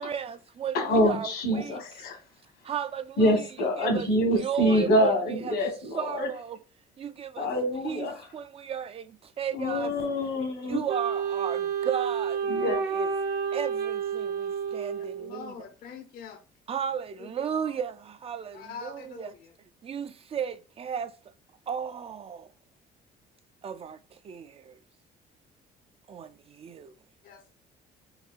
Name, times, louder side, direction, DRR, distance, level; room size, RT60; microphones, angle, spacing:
voice 1, 0.0-1.8 2.6-3.5 3.8-5.6 5.9-6.6 7.0-7.5 7.8-8.1 8.3-9.9 10.7-13.1 13.5-15.5 16.7-19.3 19.8-21.1 21.7-22.5 23.6-24.8 26.1-26.9, right 8 dB, 35° right, 0.3 m, -35 dB
voice 2, 0.7-2.2 3.2-6.3 7.4-8.1 9.5-10.8 12.5-12.8, equal, 80° left, 1.4 m, -25 dB
Wind instrument woodwind instrument, 10.9-15.5, right 6 dB, 70° right, 1.0 m, -30 dB
voice 3, 14.9-16.4 17.2-17.8 18.5-19.5 27.2-27.5, left 6 dB, 60° left, 0.6 m, -44 dB
4.7 x 2.7 x 2.4 m
cardioid pair, 110°, 17 cm